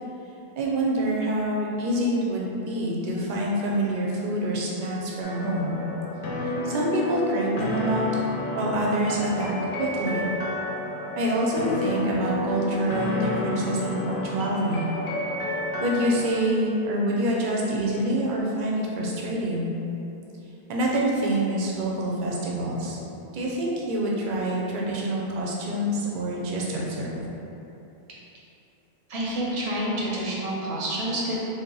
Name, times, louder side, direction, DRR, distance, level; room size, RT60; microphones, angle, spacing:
voice 1, 0.6-5.8 6.4-8.1 8.5-9.5 9.8-10.2 11.2-14.9 15.8-19.7 20.7-23.0 23.3-27.2, right 1 dB, 60° right, -4 dB, 0.6 m, -26 dB
sound 1, 5.2-16.3, left 2 dB, 65° left, 0.7 m, -31 dB
voice 2, 29.1-31.4, right 1 dB, 85° right, -6 dB, 1.0 m, -28 dB
2.8 x 2.2 x 3.7 m, 2.9 s
omnidirectional pair, 1.1 m